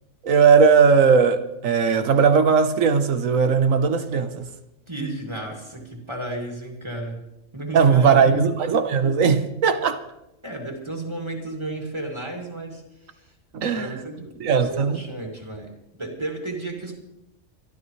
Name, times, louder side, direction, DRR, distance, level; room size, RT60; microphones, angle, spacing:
voice 1, 0.2-4.5 7.7-10.0 13.5-13.9 14.4-15.0, right 6 dB, 80° right, 1.4 m, -18 dB
voice 2, 4.9-7.3 7.5-8.4 10.4-13.3 13.7-15.7 16.0-17.0, right 2 dB, 20° right, 2.6 m, -33 dB
25.0 x 12.5 x 3.2 m
omnidirectional pair, 1.3 m